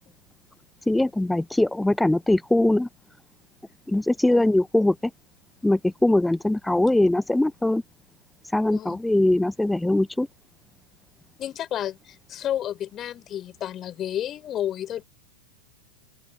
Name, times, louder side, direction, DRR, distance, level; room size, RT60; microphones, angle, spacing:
voice 1, 0.9-2.9 3.9-5.0 5.6-7.8 8.5-10.3, left 1 dB, 5° left, 0.5 m, -21 dB
voice 2, 8.7-9.0 11.4-15.0, left 11 dB, 30° left, 5.8 m, -31 dB
open air
figure-of-eight pair, 90°, 0 cm